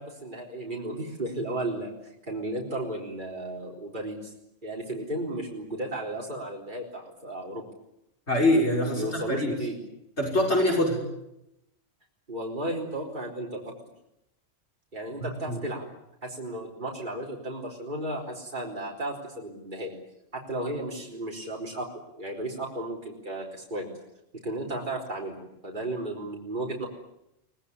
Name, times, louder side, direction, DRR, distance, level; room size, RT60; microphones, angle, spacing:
voice 1, 0.0-4.3 4.6-7.6 8.9-9.8 12.3-13.7 14.9-15.8 16.2-19.9 20.3-21.9 22.2-23.8 24.4-26.9, right 1 dB, 45° right, -1 dB, 4.4 m, -34 dB
voice 2, 8.3-9.6 10.2-11.0 15.2-15.6, left 1 dB, 70° left, 0 dB, 6.2 m, -24 dB
24.5 x 19.5 x 9.9 m, 0.85 s
omnidirectional pair, 1.2 m